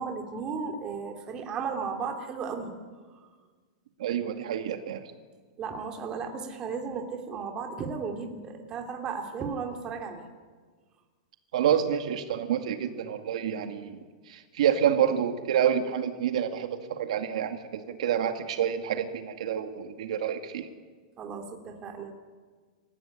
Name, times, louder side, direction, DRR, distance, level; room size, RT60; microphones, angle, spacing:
voice 1, 0.0-2.7 5.6-10.2 21.2-22.1, right 5 dB, 20° right, 3 dB, 2.6 m, -35 dB
voice 2, 4.0-5.0 11.5-14.0 14.3-20.7, right 9 dB, 75° right, 6 dB, 2.1 m, -28 dB
26.0 x 15.5 x 10.0 m, 1.5 s
supercardioid pair, 160°, 4 cm